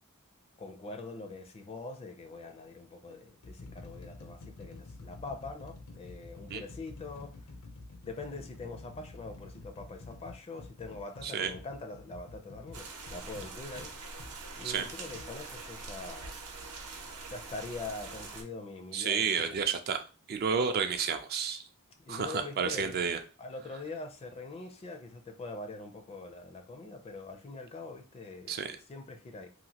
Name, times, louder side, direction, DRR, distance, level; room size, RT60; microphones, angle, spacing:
voice 1, 0.6-7.3 8.0-16.4 17.2-19.6 22.0-23.0 23.4-28.6 28.9-29.5, left 3 dB, 25° left, 0.4 m, -43 dB
sound 1, 1.1-1.4 2.3-2.4 3.1-14.4 15.1-15.3, left 2 dB, 80° left, 0.6 m, -49 dB
sound 2, 12.7-18.4, right 3 dB, 80° right, 0.7 m, -44 dB
voice 2, 18.9-20.0 20.3-21.6 22.1-23.2 28.5-28.8, right 6 dB, 45° right, 0.4 m, -31 dB
2.9 x 2.4 x 2.8 m
head